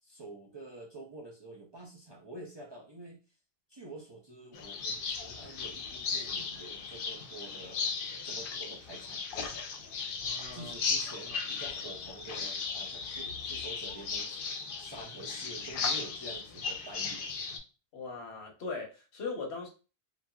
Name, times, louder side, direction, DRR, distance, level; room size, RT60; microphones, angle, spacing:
voice 1, 0.0-3.2 3.7-7.9 8.2-9.2 10.5-17.3, right 2 dB, 40° right, 0.4 m, -48 dB
sound 1, 4.5-17.6, left 5 dB, 65° left, 0.7 m, -36 dB
voice 2, 10.2-10.7 17.9-19.7, left 4 dB, 90° left, 1.2 m, -39 dB
2.8 x 2.7 x 2.3 m
omnidirectional pair, 1.0 m